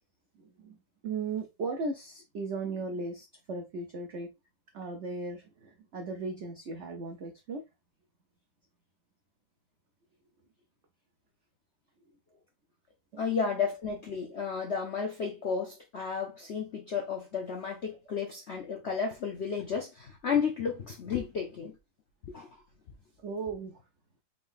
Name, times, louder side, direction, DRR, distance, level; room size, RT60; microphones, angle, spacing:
voice 1, 0.4-0.8 1.0-4.3 4.7-7.6 13.1-13.2 23.2-23.8, right 3 dB, 85° right, 0.6 m, -37 dB
voice 2, 13.2-21.8 22.2-22.6, left 6 dB, 75° left, 0.6 m, -32 dB
4.0 x 3.7 x 2.5 m
omnidirectional pair, 2.1 m